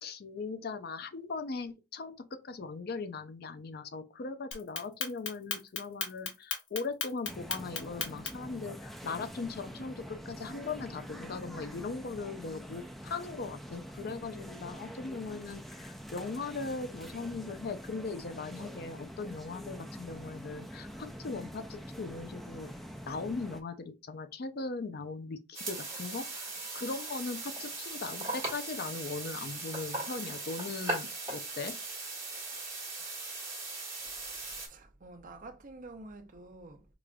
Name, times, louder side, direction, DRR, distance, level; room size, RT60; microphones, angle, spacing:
voice 1, 0.0-22.7 23.1-31.7, left 4 dB, 55° left, 0.5 m, -39 dB
Clock, 4.5-8.5, left 6 dB, 80° left, 0.9 m, -35 dB
sound 1, 7.2-23.6, equal, ahead, 0.3 m, -45 dB
sound 2, 25.5-34.7, right 2 dB, 15° right, 1.5 m, -39 dB
voice 2, 34.5-36.9, right 2 dB, 45° right, 0.6 m, -49 dB
4.8 x 2.4 x 2.2 m
head